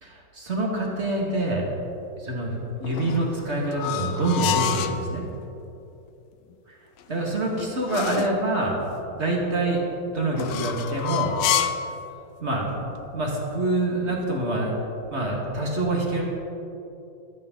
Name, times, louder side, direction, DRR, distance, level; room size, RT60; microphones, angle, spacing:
voice 1, 0.0-1.6 2.2-2.5 2.8-5.2 6.7-6.8 7.1-8.8 9.1-9.8 10.1-11.3 12.4-14.7 15.1-16.2, right 2 dB, 25° right, -2 dB, 1.5 m, -26 dB
sound 1, 2.8-5.0 7.0-8.4 10.3-11.9, left 10 dB, 85° left, 1.5 m, -28 dB
24.0 x 9.3 x 3.9 m, 2.9 s
omnidirectional pair, 3.9 m